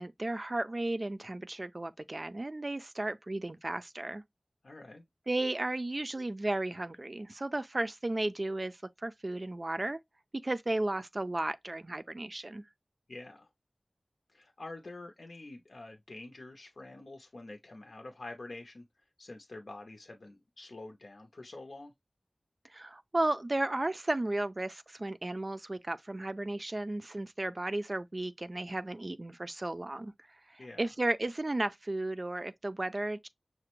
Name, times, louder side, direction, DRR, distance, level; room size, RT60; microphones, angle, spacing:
voice 1, 0.0-4.2 5.3-10.0 10.4-12.6 22.7-30.1 30.5-33.3, right 2 dB, 45° right, 0.3 m, -34 dB
voice 2, 4.6-5.0 13.1-13.5 14.3-18.9 19.2-21.9 30.6-30.9, left 2 dB, 80° left, 0.6 m, -47 dB
5.8 x 2.1 x 2.9 m
wide cardioid pair, 65°, 0 cm